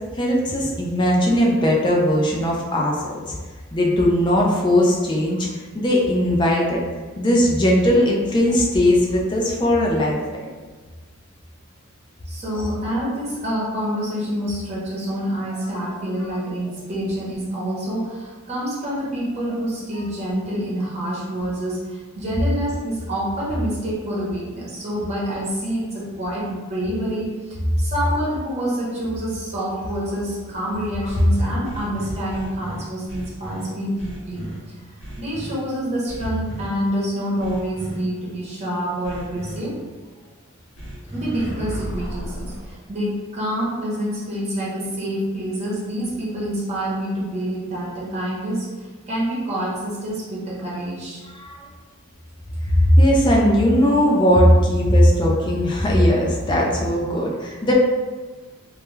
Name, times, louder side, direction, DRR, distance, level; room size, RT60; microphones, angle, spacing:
voice 1, 0.1-3.0 3.3-3.4 3.7-6.8 7.2-10.5 51.3-51.7 52.7-57.7, equal, 20° left, -3 dB, 0.3 m, -18 dB
voice 2, 12.3-34.5 35.2-39.8 41.1-51.2, equal, 30° right, -7 dB, 0.8 m, -27 dB
sound 1, 31.0-33.6 34.0-34.6 35.0-35.5 36.1-36.7 37.4-38.0 39.0-39.6 40.8-42.7, right 1 dB, 55° left, 0.8 m, -34 dB
2.3 x 2.1 x 3.0 m, 1.4 s
head